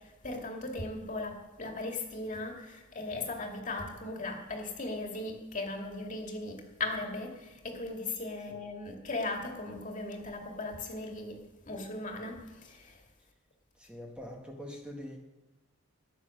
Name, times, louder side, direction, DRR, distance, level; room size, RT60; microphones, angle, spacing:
voice 1, 0.0-13.0, left 2 dB, 40° left, 2 dB, 2.2 m, -38 dB
voice 2, 13.7-15.2, equal, 5° right, 0 dB, 1.4 m, -44 dB
14.5 x 9.7 x 6.5 m, 1.1 s
head